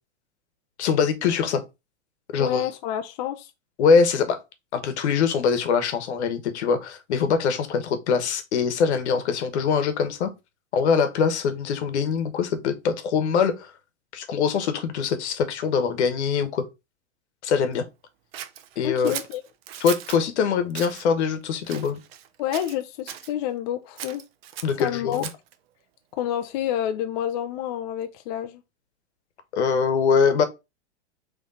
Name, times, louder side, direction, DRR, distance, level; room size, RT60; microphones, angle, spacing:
voice 1, 0.8-1.6 2.3-2.7 3.8-4.4 4.7-10.3 10.7-13.7 14.1-16.6 17.4-17.8 18.8-19.1 19.8-22.0 24.6-25.3 29.5-30.4, left 6 dB, 75° left, 1.1 m, -23 dB
voice 2, 2.4-3.5 18.8-19.4 22.4-24.2 24.8-25.2 26.2-28.6, left 11 dB, 40° left, 0.4 m, -28 dB
Scissors, 18.3-20.2 20.7-21.0 21.6-22.3 22.5-23.3 24.0-25.5, right 10 dB, 60° right, 0.7 m, -37 dB
3.8 x 3.2 x 4.1 m
supercardioid pair, 145°, 34 cm